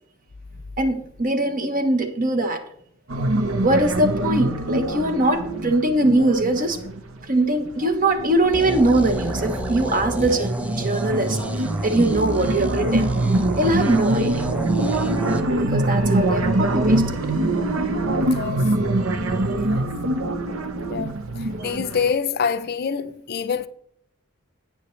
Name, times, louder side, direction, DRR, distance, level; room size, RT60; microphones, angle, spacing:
voice 1, 0.8-2.6 3.6-6.8 7.3-11.4 11.8-13.1 13.6-14.5 15.6-17.2, right 1 dB, 40° right, 1.1 m, -21 dB
sound 1, 3.1-7.3 7.7-22.1, right 2 dB, 70° right, 0.8 m, -24 dB
sound 2, 8.5-15.4, equal, 5° right, 0.4 m, -29 dB
voice 2, 15.9-16.3 18.2-18.7 19.6-19.9 20.9-23.7, left 6 dB, 45° left, 0.5 m, -27 dB
9.7 x 9.4 x 3.2 m
head